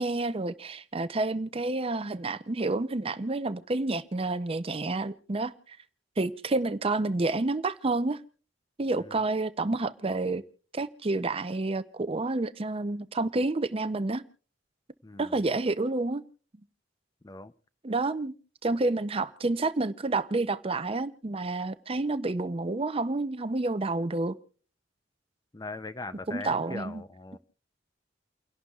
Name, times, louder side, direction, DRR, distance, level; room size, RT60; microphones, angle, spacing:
voice 1, 0.0-5.8 6.2-8.2 8.8-10.4 10.7-14.2 15.2-16.2 17.8-18.3 18.6-24.3 26.3-27.0, right 2 dB, 30° right, 0.6 m, -29 dB
voice 2, 15.0-15.3 17.2-17.5 25.5-27.4, left 2 dB, 20° left, 0.6 m, -40 dB
29.5 x 11.5 x 2.4 m
head